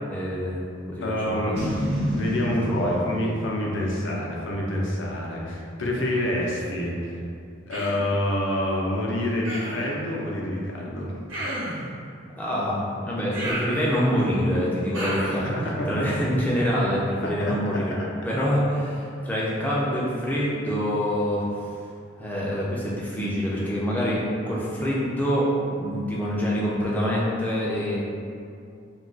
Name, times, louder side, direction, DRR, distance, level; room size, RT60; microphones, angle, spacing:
voice 1, 0.1-1.5 2.8-3.0 12.4-15.5 15.9-17.9 18.3-21.4 22.2-25.5 25.8-28.0, equal, 10° left, -6 dB, 0.4 m, -26 dB
voice 2, 1.0-1.6 2.1-7.2 7.7-11.2 15.4-16.1 17.2-17.8, left 1 dB, 70° left, -3 dB, 0.5 m, -27 dB
Boom, 1.5-4.9, equal, 55° right, 0.8 m, -30 dB
Human voice, 7.7-8.1 9.4-9.9 11.3-11.9 13.3-14.2 14.9-15.5, right 1 dB, 80° right, 0.9 m, -32 dB
2.3 x 2.2 x 3.7 m, 2.4 s
head